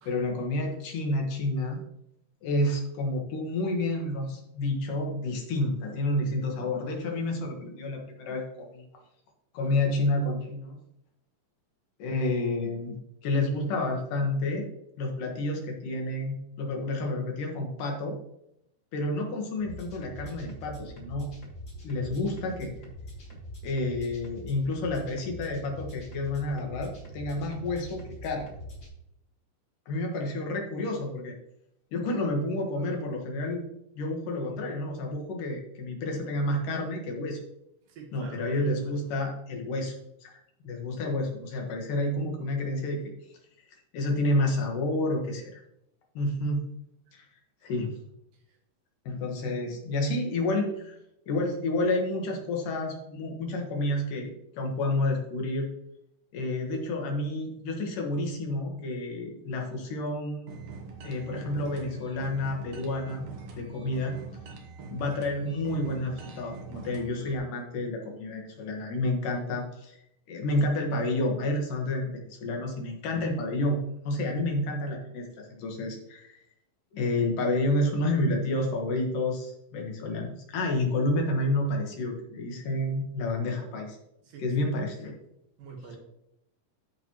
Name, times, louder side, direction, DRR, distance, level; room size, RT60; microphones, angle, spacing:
voice 1, 0.1-1.8 2.4-8.9 9.5-10.8 12.0-12.9 13.2-14.7 15.0-18.2 18.9-21.3 21.8-22.7 23.6-28.5 29.9-31.3 31.9-33.7 34.0-37.4 38.1-39.9 40.2-40.3 40.6-43.0 43.9-45.6 46.1-46.6 47.1-47.2 47.6-47.9 49.1-50.9 51.3-55.7 56.3-60.4 61.0-63.2 63.5-64.1 64.9-69.9 70.3-76.4 76.9-84.0 84.4-85.1, left 2 dB, 75° left, 1 dB, 3.1 m, -30 dB
sound 1, 19.6-28.9, equal, 35° left, 1.9 m, -43 dB
voice 2, 37.9-38.6 84.2-84.5 85.6-86.0, right 4 dB, 80° right, 2 dB, 3.1 m, -45 dB
sound 2, 60.5-67.4, right 4 dB, 65° right, 2.3 m, -43 dB
13.0 x 5.2 x 3.0 m, 0.79 s
omnidirectional pair, 3.8 m